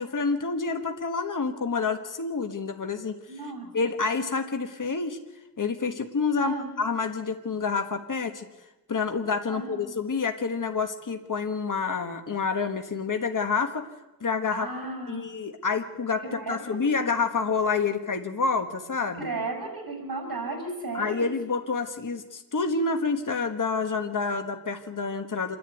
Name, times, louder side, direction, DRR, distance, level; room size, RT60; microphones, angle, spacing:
voice 1, 0.0-3.2 3.7-5.2 5.6-8.4 8.9-13.9 14.2-14.7 15.1-19.3 20.9-25.6, left 4 dB, 60° left, 6 dB, 1.4 m, -28 dB
voice 2, 3.3-3.9 6.4-6.7 9.5-9.9 14.5-15.3 16.2-17.0 19.1-21.3, right 3 dB, 70° right, 2 dB, 6.9 m, -35 dB
27.0 x 11.0 x 9.1 m, 1.1 s
wide cardioid pair, 70°, 36 cm